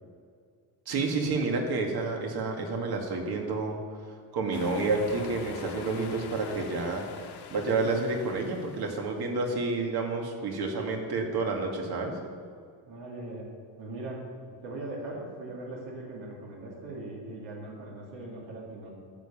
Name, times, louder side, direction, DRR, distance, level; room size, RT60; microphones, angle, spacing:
voice 1, 0.9-3.8 4.3-7.1 7.5-12.2, right 3 dB, 55° right, 2 dB, 2.1 m, -29 dB
sound 1, 4.5-9.3, left 5 dB, 55° left, 1.5 m, -44 dB
voice 2, 12.9-13.5 13.8-14.2 14.6-18.9, right 2 dB, 70° right, -3 dB, 3.0 m, -40 dB
12.0 x 7.2 x 7.2 m, 2.2 s
cardioid pair, 145°, 46 cm